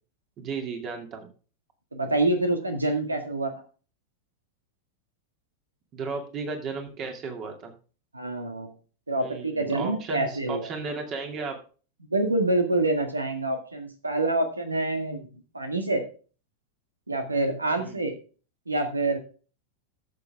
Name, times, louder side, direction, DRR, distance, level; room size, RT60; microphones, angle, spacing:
voice 1, 0.4-1.3 5.9-7.7 9.2-11.6 17.8-18.0, right 4 dB, 35° right, 3 dB, 2.5 m, -34 dB
voice 2, 1.9-3.5 8.1-8.7 9.1-10.7 12.1-16.0 17.1-18.1 18.7-19.2, right 2 dB, 80° right, 6 dB, 1.9 m, -26 dB
13.5 x 7.0 x 3.6 m, 0.37 s
figure-of-eight pair, 90°, 0 cm